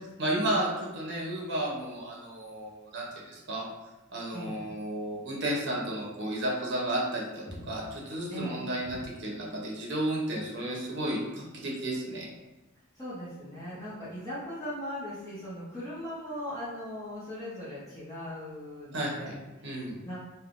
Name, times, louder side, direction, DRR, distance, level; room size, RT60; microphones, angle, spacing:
voice 1, 0.2-3.6 4.1-12.3 18.9-19.3 19.6-20.0, right 1 dB, 60° right, -2 dB, 0.8 m, -33 dB
voice 2, 4.3-4.6 7.6-7.7 8.3-9.0 13.0-19.7 20.0-20.2, equal, 15° left, -10 dB, 0.7 m, -39 dB
3.2 x 2.2 x 2.5 m, 1.1 s
head